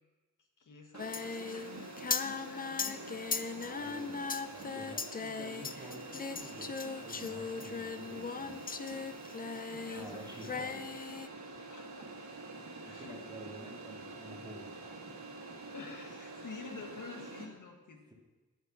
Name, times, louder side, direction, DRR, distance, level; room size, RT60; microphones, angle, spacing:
voice 1, 0.6-3.4 9.6-10.4 11.7-12.1 12.7-13.2 15.7-18.1, left 4 dB, 80° left, 3 dB, 1.6 m, -49 dB
sound 1, 0.9-17.5, right 3 dB, 65° right, 1.8 m, -47 dB
Singing, 1.0-10.1 10.4-11.3, left 5 dB, 30° left, 0.4 m, -38 dB
voice 2, 3.5-6.7 7.0-8.6 9.9-11.1 12.8-15.0, right 1 dB, 15° right, -2 dB, 2.2 m, -50 dB
9.8 x 8.3 x 6.2 m, 1.2 s
wide cardioid pair, 135°, 31 cm